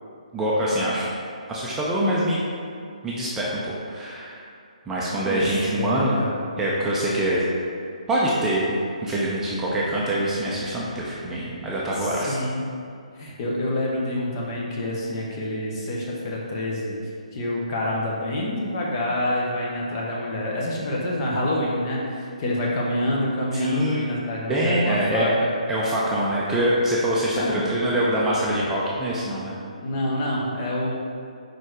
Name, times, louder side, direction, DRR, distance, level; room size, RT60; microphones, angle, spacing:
voice 1, 0.3-1.0 1.5-2.4 3.0-4.4 4.9-6.2 6.6-7.4 8.1-8.6 9.0-12.4 23.6-24.1 24.5-25.3 25.7-29.6, right 1 dB, 10° right, -6 dB, 0.6 m, -24 dB
voice 2, 5.2-6.4 12.0-12.7 13.2-17.0 17.3-25.3 27.4-27.7 29.8-30.9, left 1 dB, 35° left, -3 dB, 1.1 m, -27 dB
4.9 x 4.2 x 4.7 m, 2.4 s
figure-of-eight pair, 150°, 4 cm